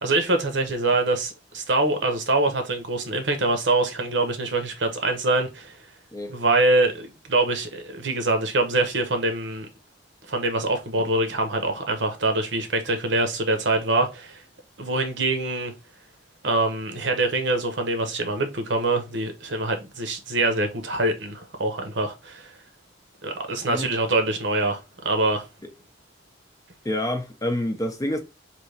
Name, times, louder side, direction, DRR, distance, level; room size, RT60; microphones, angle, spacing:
voice 1, 0.0-5.8 6.3-9.7 10.3-14.4 14.8-15.7 16.4-22.5 23.2-25.4, right 2 dB, 65° right, 0.9 m, -24 dB
voice 2, 26.8-28.2, left 1 dB, 20° left, 0.6 m, -27 dB
3.3 x 2.9 x 4.2 m
head